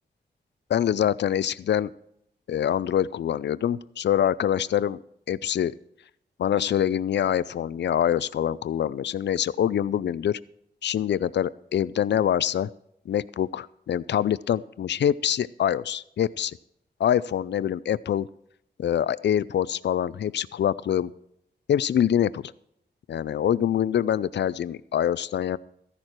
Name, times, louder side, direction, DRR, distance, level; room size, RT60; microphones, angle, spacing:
voice 1, 0.7-1.9 2.5-5.0 5.3-5.7 6.4-10.4 10.8-12.7 13.1-16.6 17.0-18.3 18.8-21.1 21.7-22.5 23.1-25.6, left 10 dB, 75° left, 19 dB, 0.4 m, -25 dB
14.5 x 11.0 x 4.6 m, 0.74 s
wide cardioid pair, 120°, 18 cm